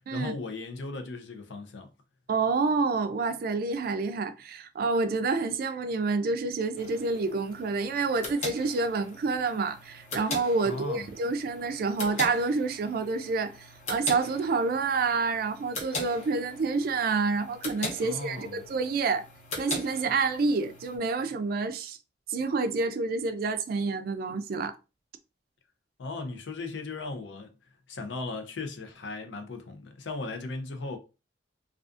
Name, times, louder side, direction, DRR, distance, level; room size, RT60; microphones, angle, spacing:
voice 1, 0.1-1.9 10.6-11.1 18.0-18.6 26.0-27.5 27.9-31.0, left 3 dB, 80° left, 0.5 m, -37 dB
voice 2, 2.3-19.3 19.6-22.0 22.3-24.8, right 4 dB, 55° right, 0.3 m, -28 dB
sound 1, 6.8-21.0, left 2 dB, 40° left, 0.7 m, -40 dB
2.4 x 2.3 x 2.4 m
head